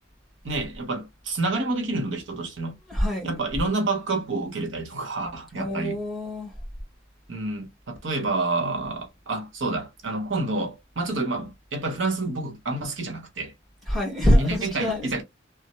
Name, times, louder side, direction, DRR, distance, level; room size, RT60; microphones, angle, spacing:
voice 1, 0.4-2.8 3.2-6.0 7.3-13.5 14.3-15.2, right 2 dB, 70° right, 0.9 m, -28 dB
voice 2, 2.9-3.4 5.6-6.5 13.9-15.2, equal, ahead, 1.3 m, -24 dB
3.2 x 2.0 x 2.9 m
head